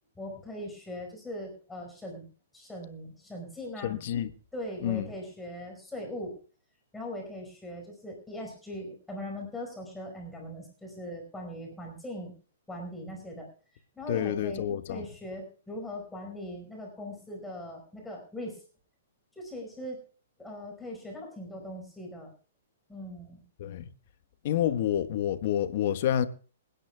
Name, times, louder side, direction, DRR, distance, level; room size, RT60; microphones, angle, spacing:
voice 1, 0.1-2.3 2.5-4.0 4.5-6.4 6.9-12.3 12.7-13.5 13.9-18.6 19.3-20.0 20.4-22.3 22.9-23.4, left 1 dB, 10° left, 5.0 m, -40 dB
voice 2, 3.8-4.3 4.8-5.1 14.1-15.0 23.6-23.9 24.4-26.3, left 10 dB, 55° left, 1.3 m, -28 dB
27.5 x 10.0 x 2.3 m
hypercardioid pair, 125°, 0 cm